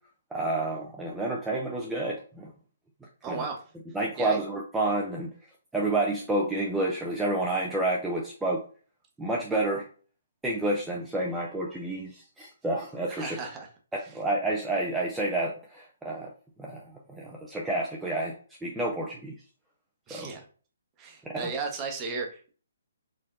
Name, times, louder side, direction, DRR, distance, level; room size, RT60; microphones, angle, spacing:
voice 1, 0.3-2.5 3.3-3.4 3.9-5.3 5.7-8.6 9.2-9.9 10.4-13.4 14.1-16.3 16.6-16.8 17.1-18.3 18.6-19.3 20.1-20.3, right 2 dB, 5° right, -3 dB, 0.5 m, -29 dB
voice 2, 3.2-3.6 4.2-4.4 13.1-13.7 14.0-14.1 20.1-20.4 21.0-22.5, right 4 dB, 20° right, 1 dB, 0.9 m, -35 dB
4.3 x 2.6 x 2.5 m, 0.40 s
figure-of-eight pair, 140°, 0 cm